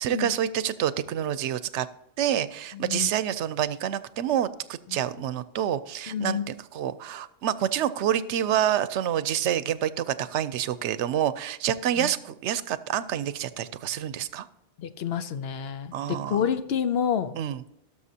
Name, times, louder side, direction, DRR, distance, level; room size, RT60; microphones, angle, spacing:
voice 1, 0.0-1.9 2.2-6.4 6.7-14.5 15.9-16.4 17.4-17.6, right 10 dB, 90° right, 15 dB, 0.9 m, -27 dB
voice 2, 2.7-3.1 4.9-5.0 6.1-6.5 12.0-12.1 14.8-16.0 16.2-17.3, left 8 dB, 65° left, 11 dB, 0.9 m, -28 dB
17.5 x 6.8 x 2.8 m, 0.82 s
omnidirectional pair, 1.2 m